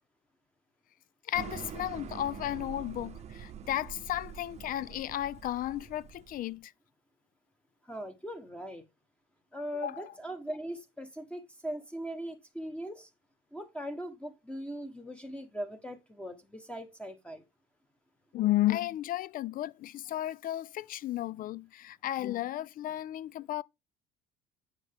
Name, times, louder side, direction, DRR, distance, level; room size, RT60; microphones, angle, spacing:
voice 1, 1.3-6.7 9.7-10.1 18.3-23.6, left 14 dB, 50° left, 0.4 m, -33 dB
sound 1, 1.3-6.5, right 7 dB, 35° right, 0.8 m, -45 dB
voice 2, 7.8-8.8 9.5-13.1 13.5-17.4, right 1 dB, 5° left, 1.3 m, -40 dB
9.1 x 5.6 x 3.6 m
cardioid pair, 115°, 19 cm